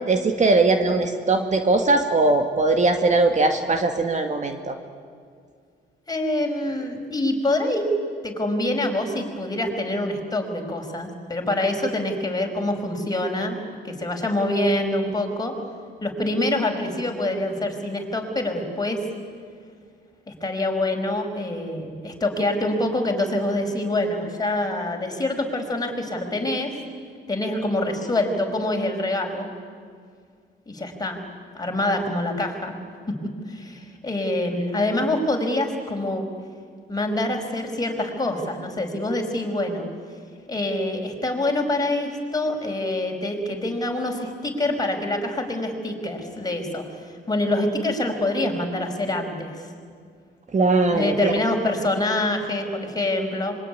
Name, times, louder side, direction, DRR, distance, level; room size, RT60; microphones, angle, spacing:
voice 1, 0.1-4.8 50.5-51.3, right 3 dB, 35° right, 6 dB, 2.1 m, -20 dB
voice 2, 6.1-7.9 8.2-15.5 16.0-19.0 20.3-26.7 27.3-29.5 30.7-31.2 31.5-32.7 33.5-36.3 36.9-39.9 40.5-49.7 50.9-53.6, left 1 dB, 20° left, 2 dB, 5.3 m, -25 dB
25.5 x 23.0 x 9.9 m, 2.1 s
cardioid pair, 90°, 20 cm